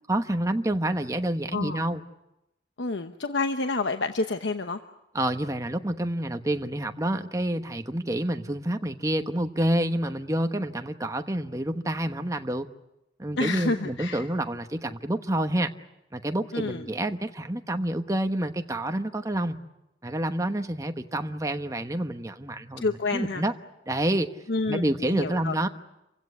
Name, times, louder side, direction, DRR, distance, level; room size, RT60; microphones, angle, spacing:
voice 1, 0.1-2.0 5.1-12.7 13.2-15.7 16.1-19.6 20.0-23.5 23.9-24.3 24.7-25.7, right 1 dB, 20° right, 6 dB, 1.1 m, -28 dB
voice 2, 1.5-1.8 2.8-4.8 13.4-14.3 16.5-16.9 22.8-23.4 24.5-25.5, left 3 dB, 80° left, 7 dB, 1.0 m, -29 dB
28.5 x 16.5 x 9.7 m, 0.92 s
head